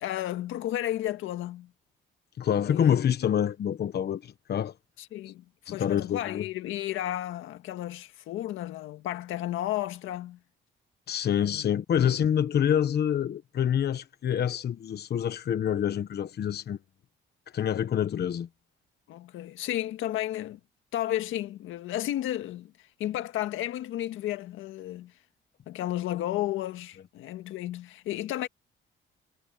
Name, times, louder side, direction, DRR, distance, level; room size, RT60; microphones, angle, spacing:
voice 1, 0.0-1.7 2.7-3.0 5.0-10.4 11.5-11.7 19.1-20.6 20.9-25.1 25.7-28.5, left 13 dB, 90° left, 1.7 m, -33 dB
voice 2, 2.4-4.7 5.7-6.5 11.1-16.8 17.5-18.5, left 9 dB, 55° left, 1.1 m, -27 dB
cardioid pair, 90°, 20 cm